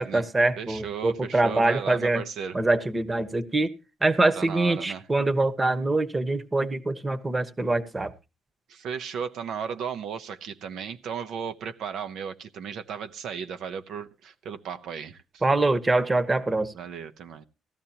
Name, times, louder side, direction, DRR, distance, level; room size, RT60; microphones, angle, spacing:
voice 1, 0.0-2.2 2.5-3.7 4.0-8.1 15.4-16.7, right 2 dB, 20° right, 1.1 m, -24 dB
voice 2, 0.6-2.6 4.3-5.0 8.7-15.4 16.7-17.4, right 7 dB, 80° right, 0.9 m, -35 dB
16.0 x 12.5 x 2.9 m
cardioid pair, 90°, 0 cm